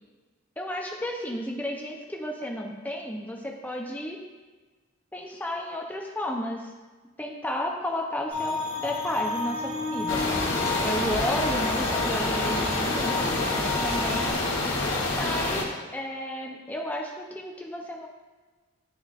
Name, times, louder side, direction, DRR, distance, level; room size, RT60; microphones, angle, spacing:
voice 1, 0.6-4.2 5.1-6.7 7.2-10.2 10.8-14.4 15.1-18.1, left 1 dB, 10° left, 0 dB, 0.6 m, -33 dB
sound 1, 8.3-14.3, left 3 dB, 35° right, 1.3 m, -32 dB
sound 2, 10.1-15.6, left 2 dB, 80° left, 1.2 m, -27 dB
11.0 x 3.8 x 2.4 m, 1.3 s
head